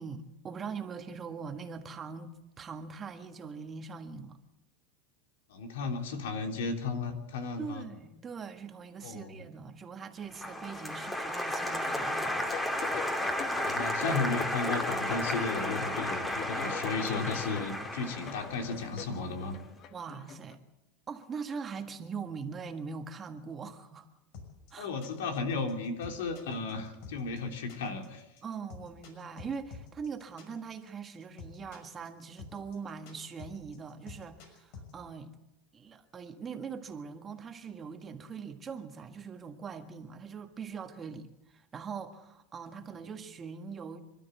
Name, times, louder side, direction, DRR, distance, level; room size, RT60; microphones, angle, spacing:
voice 1, 0.0-4.4 7.6-12.6 19.9-20.6 21.1-24.1 24.7-24.9 28.4-35.3 35.7-44.0, right 5 dB, 25° right, 1.6 m, -42 dB
voice 2, 5.5-7.9 9.0-9.3 13.5-19.6 24.8-28.2, left 4 dB, 90° left, 3.4 m, -34 dB
Applause, 10.3-19.4, left 1 dB, 10° left, 2.4 m, -33 dB
sound 1, 12.5-20.6, left 10 dB, 40° left, 1.1 m, -43 dB
sound 2, 24.3-34.9, left 5 dB, 60° left, 6.1 m, -48 dB
26.5 x 12.5 x 8.2 m
supercardioid pair, 140°, 0 cm